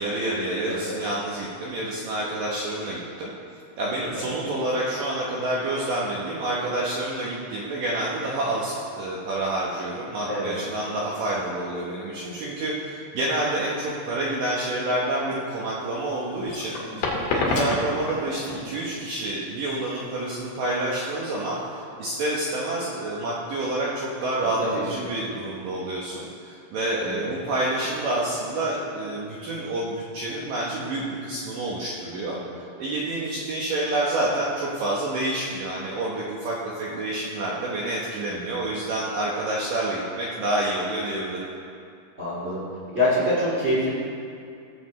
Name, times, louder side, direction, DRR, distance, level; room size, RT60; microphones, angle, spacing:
voice 1, 0.0-3.3 3.8-16.8 17.3-21.6 22.0-32.4 32.8-41.5, right 1 dB, 80° right, -5 dB, 1.9 m, -28 dB
voice 2, 0.6-1.0 4.0-4.4 10.2-10.6 16.7-17.1 17.5-17.8 24.6-24.8 27.0-27.4 32.3-32.4 38.4-38.6 42.2-42.6 42.9-43.9, equal, 40° right, -8 dB, 0.9 m, -27 dB
sound 1, 15.8-21.8, left 2 dB, 60° left, 2.6 m, -30 dB
17.0 x 7.4 x 3.2 m, 2.4 s
omnidirectional pair, 5.3 m